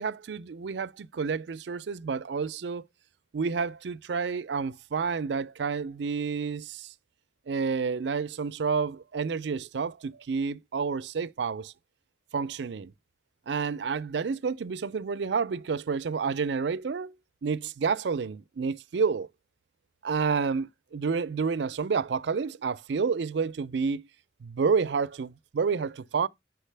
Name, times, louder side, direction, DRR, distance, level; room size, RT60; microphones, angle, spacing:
voice 1, 0.0-2.8 3.3-6.9 7.5-11.7 12.3-12.9 13.5-17.1 17.4-19.3 20.0-24.1 24.4-26.3, right 5 dB, 75° right, 0.4 m, -29 dB
8.2 x 6.0 x 3.3 m
head